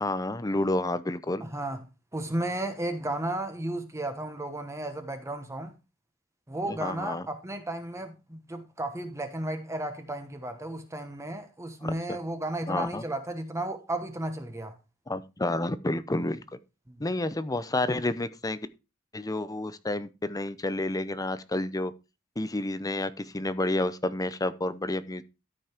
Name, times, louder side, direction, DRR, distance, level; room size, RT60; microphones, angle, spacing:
voice 1, 0.0-1.4 6.7-7.3 11.8-12.2 12.7-13.0 15.1-16.6 17.0-18.6 19.1-21.9 22.4-25.2, left 2 dB, 15° left, 0.6 m, -30 dB
voice 2, 1.4-1.8 2.1-5.7 6.5-14.7 16.9-17.0, right 1 dB, 15° right, 1.1 m, -34 dB
13.0 x 5.5 x 4.4 m
head